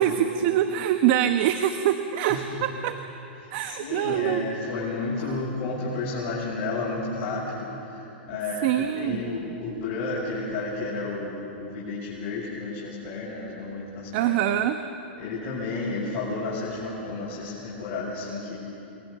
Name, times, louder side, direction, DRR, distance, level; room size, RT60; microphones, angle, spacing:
voice 1, 0.0-3.0 3.5-4.5 5.3-5.4 8.6-9.4 14.1-14.8, right 11 dB, 55° right, 8 dB, 1.1 m, -24 dB
voice 2, 3.3-14.3 15.2-18.6, left 3 dB, 45° left, -8 dB, 7.3 m, -32 dB
28.5 x 22.0 x 6.9 m, 2.9 s
hypercardioid pair, 130°, 6 cm